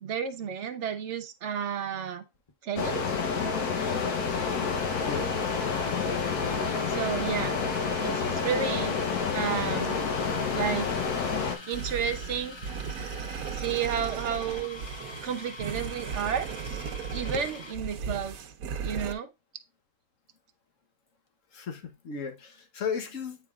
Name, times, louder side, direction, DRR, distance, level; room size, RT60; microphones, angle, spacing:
voice 1, 0.0-2.2 2.6-3.0 6.9-7.6 8.0-8.9 9.3-10.0 10.5-10.9 11.7-12.6 13.5-14.9 15.2-16.5 17.1-18.3 18.8-19.3, right 7 dB, 60° right, 1.0 m, -31 dB
sound 1, 2.3-2.5 3.7-17.8, left 3 dB, 30° left, 0.5 m, -45 dB
sound 2, 2.8-11.6, left 5 dB, 85° left, 1.5 m, -29 dB
sound 3, 11.7-19.1, right 6 dB, 75° right, 1.2 m, -36 dB
voice 2, 21.5-23.4, left 6 dB, 60° left, 1.3 m, -35 dB
8.5 x 4.7 x 2.4 m
omnidirectional pair, 1.6 m